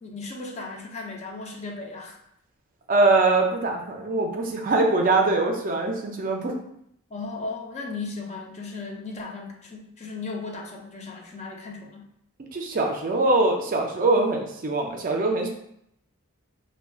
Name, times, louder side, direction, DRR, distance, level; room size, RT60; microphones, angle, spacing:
voice 1, 0.0-2.2 7.1-12.1, left 3 dB, 30° left, 1 dB, 0.4 m, -36 dB
voice 2, 2.9-6.5 12.5-15.5, right 2 dB, 40° right, 1 dB, 0.4 m, -22 dB
3.5 x 2.1 x 2.3 m, 0.73 s
head